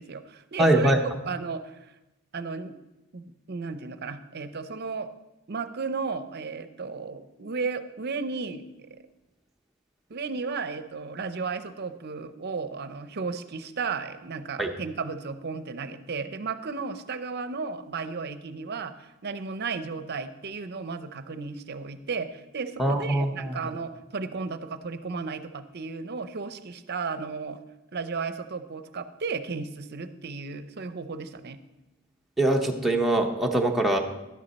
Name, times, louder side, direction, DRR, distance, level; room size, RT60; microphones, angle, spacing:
voice 1, 0.0-1.9 2.3-2.7 3.1-5.1 5.5-8.9 10.1-27.6 27.9-31.6, right 4 dB, 50° right, 11 dB, 0.6 m, -34 dB
voice 2, 0.6-1.0 14.6-14.7 22.8-23.6 32.4-34.0, right 1 dB, ahead, 0 dB, 0.8 m, -23 dB
11.5 x 9.9 x 4.1 m, 1.0 s
head